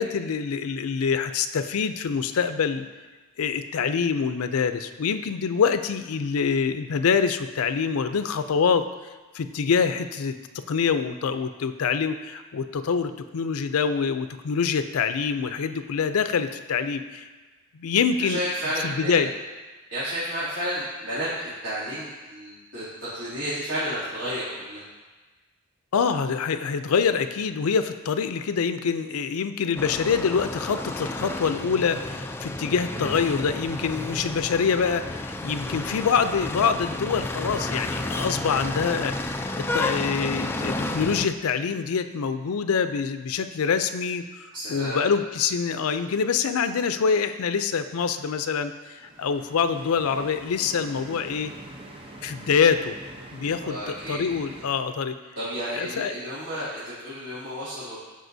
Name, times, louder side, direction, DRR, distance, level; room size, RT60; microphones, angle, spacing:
voice 1, 0.0-2.9 3.4-8.9 9.3-10.4 10.7-17.2 17.7-18.4 18.8-19.3 25.9-44.2 44.7-51.5 52.2-53.0 53.3-55.1 55.7-56.1, left 6 dB, 80° left, 10 dB, 0.4 m, -25 dB
voice 2, 18.2-19.2 19.9-24.8 44.5-45.0 53.6-54.2 55.4-58.0, equal, 75° right, -13 dB, 2.6 m, -31 dB
sound 1, 29.8-41.3, left 2 dB, 10° left, 0.3 m, -31 dB
sound 2, 49.0-54.7, right 1 dB, 25° right, 0.7 m, -44 dB
14.0 x 5.0 x 2.7 m, 1.3 s
head